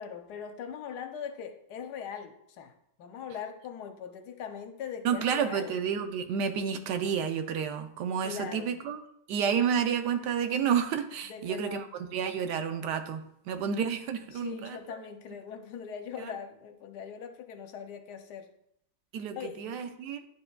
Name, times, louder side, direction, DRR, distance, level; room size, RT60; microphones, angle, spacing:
voice 1, 0.0-5.8 8.2-8.8 11.2-11.8 14.3-18.5 19.3-19.8, left 7 dB, 80° left, 6 dB, 1.2 m, -41 dB
voice 2, 5.0-9.0 9.3-11.9 12.1-14.8 19.1-20.2, right 7 dB, 90° right, 7 dB, 1.3 m, -30 dB
9.8 x 4.4 x 2.3 m, 0.73 s
omnidirectional pair, 1.8 m